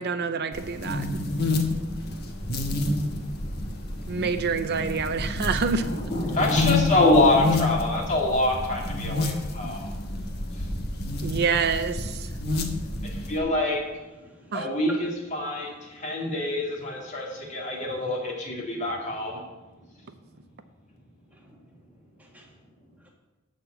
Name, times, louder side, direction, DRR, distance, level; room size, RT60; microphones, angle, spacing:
voice 1, 0.0-1.2 4.1-5.8 9.6-9.8 11.2-12.3 14.5-14.7, right 5 dB, 50° right, 9 dB, 0.5 m, -27 dB
sound 1, 0.5-13.4, left 2 dB, 50° left, 1.2 m, -29 dB
voice 2, 1.7-2.3 3.0-3.5 3.9-4.2 5.8-9.8 13.3-13.8 14.5-19.4, left 2 dB, 35° left, -1 dB, 2.3 m, -26 dB
voice 3, 14.1-14.7 21.3-21.9 22.2-23.1, equal, 10° right, -1 dB, 1.7 m, -59 dB
11.5 x 4.3 x 8.0 m, 1.1 s
head